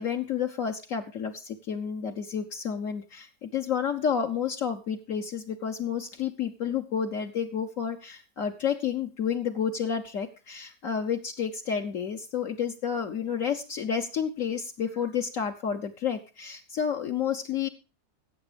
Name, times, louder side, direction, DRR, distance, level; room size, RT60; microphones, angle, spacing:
voice 1, 0.0-17.7, left 7 dB, 60° left, 3 dB, 1.3 m, -30 dB
16.0 x 7.3 x 5.0 m, 0.32 s
omnidirectional pair, 1.6 m